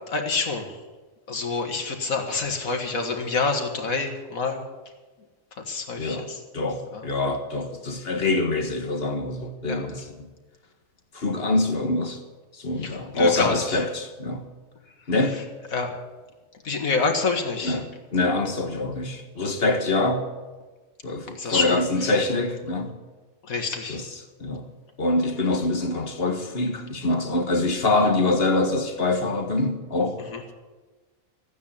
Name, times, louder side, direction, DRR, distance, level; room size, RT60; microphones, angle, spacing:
voice 1, 0.1-0.8 1.3-4.6 5.7-6.4 6.9-7.0 9.7-9.8 12.8-13.8 15.7-16.0 16.6-17.8 21.4-21.8 23.5-24.0 30.3-30.4, left 4 dB, 90° left, 4 dB, 2.2 m, -27 dB
voice 2, 6.0-6.3 6.5-10.3 11.1-12.2 12.5-14.4 15.1-15.4 17.6-20.2 21.0-22.9 23.9-24.6 25.0-30.2, left 2 dB, 45° left, 6 dB, 1.7 m, -25 dB
14.0 x 9.5 x 8.8 m, 1.3 s
omnidirectional pair, 1.4 m